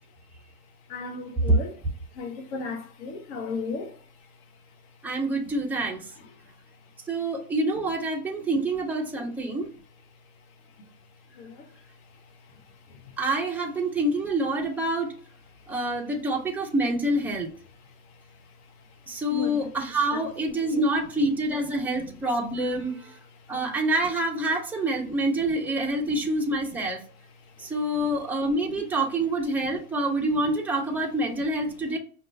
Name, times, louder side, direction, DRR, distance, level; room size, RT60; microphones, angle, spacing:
voice 1, 0.9-1.7 2.1-3.9 8.5-8.6 11.4-11.7 12.9-13.0 19.3-19.7 20.7-20.8 23.5-23.7 27.6-27.7, left 4 dB, 50° left, 1.0 m, -35 dB
voice 2, 5.0-6.1 7.1-9.7 13.2-15.1 15.7-17.5 19.1-23.2 23.5-27.0 27.6-32.0, right 1 dB, 5° right, 0.4 m, -26 dB
5.2 x 2.3 x 2.5 m
hypercardioid pair, 115°, 43 cm